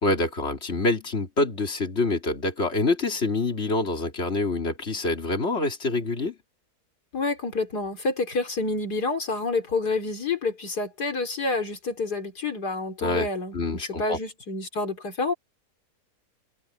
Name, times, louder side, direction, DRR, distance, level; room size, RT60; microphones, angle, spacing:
voice 1, 0.0-6.4 13.0-13.3 13.5-14.2, left 2 dB, 40° left, 3.5 m, -26 dB
voice 2, 7.1-13.6 14.0-15.3, left 3 dB, 85° left, 3.9 m, -28 dB
omnidirectional pair, 1.7 m